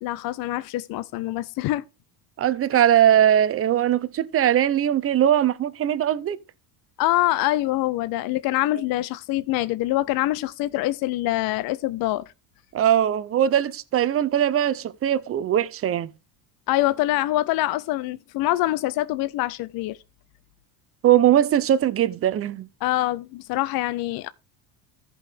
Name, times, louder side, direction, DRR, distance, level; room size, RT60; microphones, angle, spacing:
voice 1, 0.0-1.8 7.0-12.2 16.7-20.0 22.8-24.3, left 16 dB, 50° left, 0.5 m, -25 dB
voice 2, 2.4-6.4 12.7-16.1 21.0-22.7, right 11 dB, 30° right, 0.6 m, -20 dB
14.5 x 5.4 x 3.5 m
cardioid pair, 125°, 47 cm